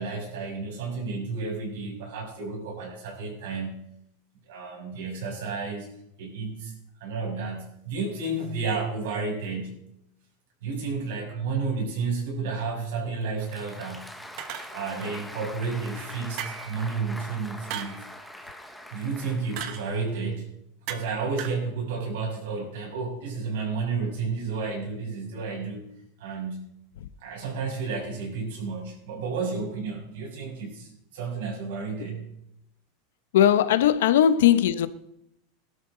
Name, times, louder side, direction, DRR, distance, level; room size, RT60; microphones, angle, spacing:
voice 1, 0.0-3.8 4.5-5.9 6.2-6.7 7.0-9.8 10.6-14.1 14.7-18.1 18.9-20.5 20.9-25.8 26.2-26.7 27.2-32.3, right 4 dB, 75° right, 6.7 m, -31 dB
Applause, 13.2-20.3, left 1 dB, ahead, 0.9 m, -43 dB
sound 1, 14.4-15.1 16.4-16.8 17.7-18.0 19.6-19.9 20.9-21.1 21.4-21.6, right 10 dB, 45° right, 1.1 m, -36 dB
voice 2, 33.3-34.9, left 10 dB, 90° left, 0.9 m, -19 dB
20.0 x 12.0 x 3.9 m
supercardioid pair, 170°, 0 cm